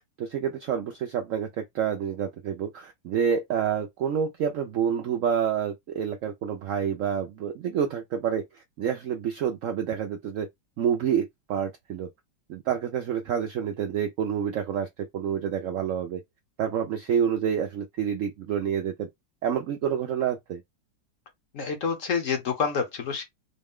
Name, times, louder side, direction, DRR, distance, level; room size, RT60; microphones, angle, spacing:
voice 1, 0.2-10.5 10.8-12.1 12.5-16.2 16.6-19.1 19.4-20.6, right 8 dB, 75° right, 0.7 m, -28 dB
voice 2, 21.5-23.2, left 5 dB, 55° left, 1.0 m, -28 dB
4.0 x 2.1 x 3.5 m
omnidirectional pair, 1.9 m